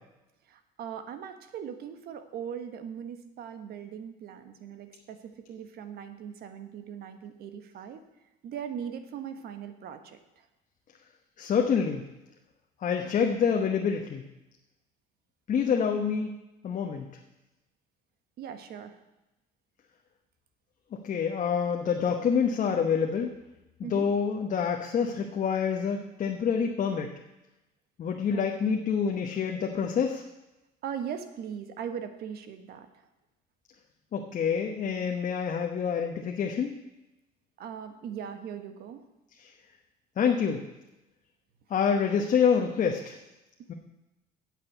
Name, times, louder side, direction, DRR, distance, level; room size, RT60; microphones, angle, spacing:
voice 1, 0.5-5.2 5.5-8.0 8.4-10.2 18.4-19.0 23.8-24.1 28.3-28.8 30.8-32.9 37.6-39.0, right 8 dB, 65° right, 9 dB, 1.3 m, -39 dB
voice 2, 11.4-12.0 12.8-14.2 15.5-16.3 16.6-17.0 21.0-23.3 23.8-27.1 28.0-30.2 34.1-36.7 40.2-40.6 41.7-43.2 43.7-43.8, left 6 dB, 50° left, 2 dB, 1.1 m, -27 dB
9.0 x 7.6 x 8.2 m, 0.98 s
cardioid pair, 110°, 17 cm